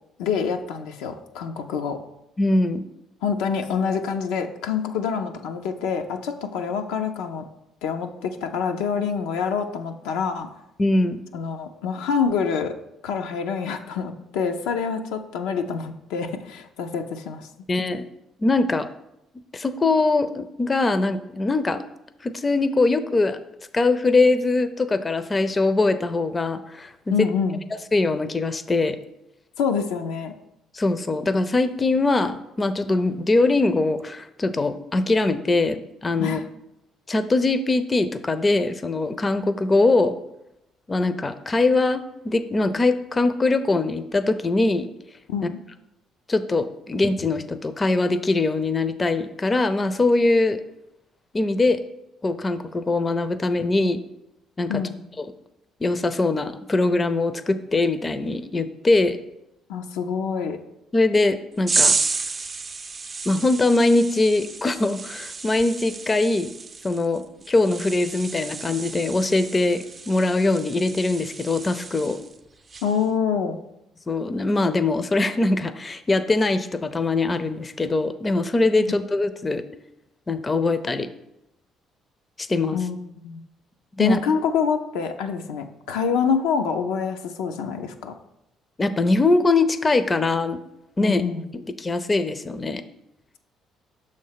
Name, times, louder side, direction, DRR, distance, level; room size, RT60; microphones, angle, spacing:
voice 1, 0.2-2.0 3.2-7.4 7.8-10.5 11.3-12.7 13.0-17.5 27.1-27.6 29.6-30.3 36.2-36.4 45.3-45.6 54.7-55.0 59.7-60.6 72.8-73.6 82.7-83.4 84.0-88.2 91.0-91.4, left 6 dB, 85° left, 5 dB, 0.5 m, -26 dB
voice 2, 2.4-2.8 10.8-11.2 17.7-18.0 18.4-18.9 19.5-21.8 22.2-23.4 23.7-27.3 27.9-29.0 30.7-36.4 37.1-40.2 40.9-44.9 46.3-50.6 51.3-51.8 52.2-54.0 54.6-54.8 55.2-55.3 55.8-59.2 60.9-62.0 63.3-66.5 66.8-72.2 74.1-79.6 80.3-81.1 82.4-82.8 84.0-84.2 88.8-90.6 91.0-91.2 91.8-92.8, left 2 dB, 30° left, 11 dB, 0.5 m, -22 dB
sound 1, 61.7-72.4 72.7-73.1, right 4 dB, 35° right, 0.5 m, -30 dB
6.3 x 3.2 x 5.6 m, 0.87 s
supercardioid pair, 60°, 0 cm